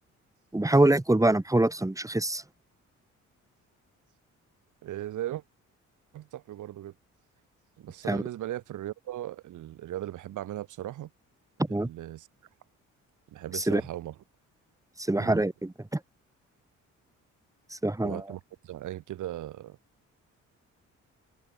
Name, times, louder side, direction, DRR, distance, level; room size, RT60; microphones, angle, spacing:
voice 1, 0.5-2.4 8.1-8.2 11.6-11.9 13.5-13.8 15.0-16.0 17.7-18.2, right 1 dB, 10° right, 6.0 m, -25 dB
voice 2, 4.8-5.4 6.1-6.9 7.8-11.1 11.8-12.3 13.3-14.1 15.2-15.4 18.0-19.8, right 13 dB, 80° right, 5.2 m, -38 dB
cardioid pair, 90°, 30 cm